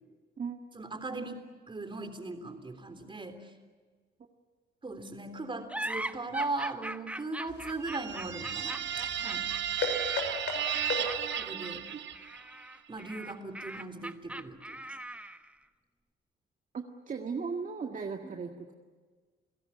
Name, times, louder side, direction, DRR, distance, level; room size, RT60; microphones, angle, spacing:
voice 1, 0.7-3.4 4.8-8.8 9.1-9.5 11.4-11.8 12.9-14.8, right 3 dB, 25° right, 7 dB, 3.6 m, -38 dB
sound 1, 5.7-15.5, right 1 dB, 5° right, 1.1 m, -41 dB
sound 2, 7.5-11.5, left 4 dB, 65° left, 6.1 m, -38 dB
sound 3, 7.8-12.5, right 10 dB, 65° right, 1.2 m, -34 dB
voice 2, 16.7-18.7, right 5 dB, 40° right, 3 dB, 1.8 m, -37 dB
30.0 x 17.0 x 9.8 m, 1.5 s
cardioid pair, 90°, 20 cm